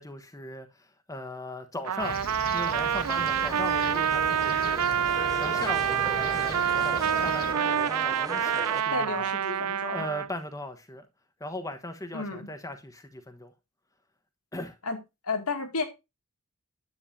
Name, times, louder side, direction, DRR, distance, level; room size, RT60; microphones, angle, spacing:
voice 1, 0.0-2.2 2.5-4.9 5.1-9.3 9.8-11.1 11.4-13.5 14.5-14.8, left 1 dB, 15° left, 1.2 m, -39 dB
Trumpet, 1.8-10.3, right 8 dB, 80° right, 0.5 m, -27 dB
Fixed-wing aircraft airplane, 2.0-7.5, left 2 dB, 45° left, 1.3 m, -40 dB
sound 1, 2.7-8.8, right 2 dB, 15° right, 1.1 m, -38 dB
voice 2, 8.9-10.1 12.1-12.5 14.8-15.0 15.2-15.8, left 3 dB, 80° left, 2.4 m, -32 dB
10.5 x 9.2 x 2.8 m
head